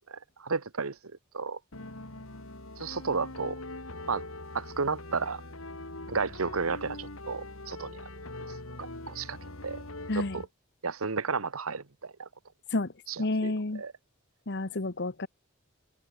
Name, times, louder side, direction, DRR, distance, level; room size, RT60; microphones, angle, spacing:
voice 1, 0.1-1.0 1.3-1.6 2.8-3.6 4.1-4.2 4.5-5.4 6.1-8.0 8.8-9.4 9.6-9.8 10.3-10.4 10.8-12.3 13.1-13.9, right 4 dB, 85° right, 1.3 m, -33 dB
sound 1, 1.7-10.5, left 2 dB, 80° left, 4.9 m, -42 dB
voice 2, 13.2-13.8 14.5-15.3, left 2 dB, 55° left, 1.2 m, -30 dB
head